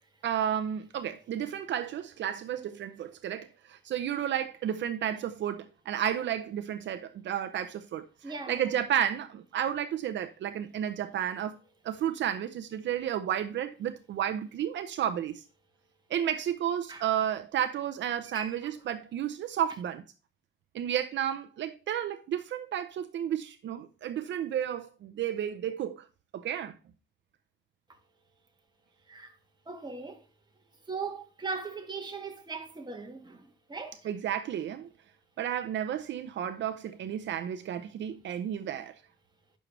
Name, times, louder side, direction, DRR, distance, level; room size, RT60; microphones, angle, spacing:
voice 1, 0.2-11.6 11.8-15.4 16.1-20.0 20.7-26.1 26.3-26.7 34.0-34.9 35.4-38.9, right 10 dB, 65° right, 0.7 m, -32 dB
voice 2, 8.2-8.7 16.9-17.0 18.3-18.7 27.9-28.0 29.1-29.3 29.7-30.3 30.9-34.1, right 4 dB, 20° right, 2.0 m, -39 dB
9.8 x 6.4 x 3.3 m
cardioid pair, 90°, 20 cm